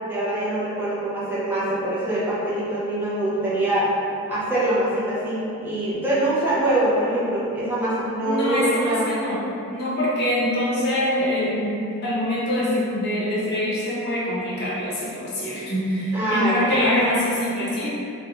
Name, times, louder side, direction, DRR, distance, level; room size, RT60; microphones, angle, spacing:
voice 1, 0.0-3.9 4.3-9.1 16.1-16.8, right 1 dB, 10° right, -10 dB, 0.6 m, -24 dB
voice 2, 8.2-9.4 9.7-17.9, left 1 dB, 50° left, -8 dB, 0.7 m, -24 dB
2.4 x 2.1 x 2.9 m, 2.7 s
head